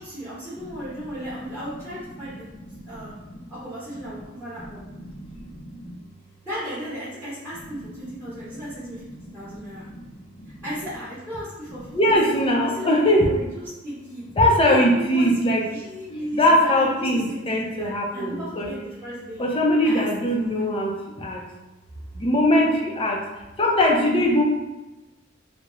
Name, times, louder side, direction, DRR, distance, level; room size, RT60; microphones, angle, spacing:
voice 1, 0.0-2.4 2.9-3.1 3.5-4.8 6.5-9.0 9.3-9.9 10.6-12.1 12.4-14.2 14.6-16.4 16.8-19.4 19.8-20.1 20.4-20.8, equal, 10° right, -12 dB, 1.0 m, -35 dB
voice 2, 2.3-3.5 4.6-6.0 7.7-7.9 8.5-8.6 9.1-10.7 11.7-13.3 14.4-15.6 16.1-18.7 19.4-21.4 22.1-23.2 23.6-24.4, left 1 dB, 30° left, -1 dB, 0.5 m, -22 dB
3.6 x 2.0 x 3.0 m, 1.0 s
head